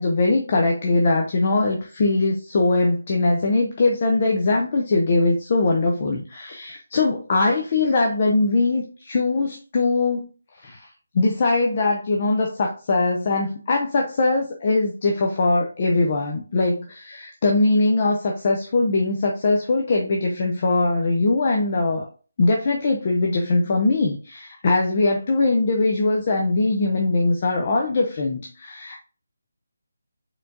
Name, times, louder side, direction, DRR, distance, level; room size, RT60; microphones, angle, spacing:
voice 1, 0.0-10.3 10.6-10.9 11.1-22.1 22.4-29.1, left 3 dB, 25° left, 1 dB, 0.5 m, -21 dB
4.4 x 3.8 x 2.6 m, 0.36 s
hypercardioid pair, 180°, 0 cm